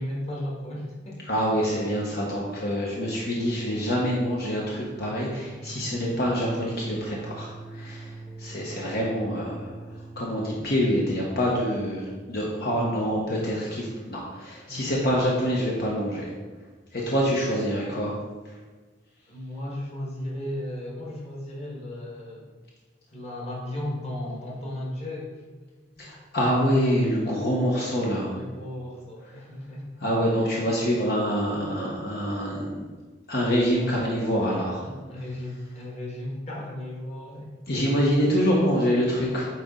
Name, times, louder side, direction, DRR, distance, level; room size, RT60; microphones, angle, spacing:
voice 1, 0.0-1.3 14.7-14.9 19.3-22.5 23.1-25.4 28.2-30.0 34.8-37.5 37.7-37.8, left 1 dB, 35° left, -3 dB, 1.7 m, -35 dB
voice 2, 1.3-9.7 10.2-16.2 16.9-18.1 18.4-18.6 26.0-28.3 30.0-32.9 33.3-34.8 37.7-39.5, equal, 60° left, -4 dB, 1.1 m, -26 dB
sound 1, 5.2-11.0, right 3 dB, 5° right, 0.4 m, -42 dB
9.2 x 4.1 x 3.8 m, 1.3 s
head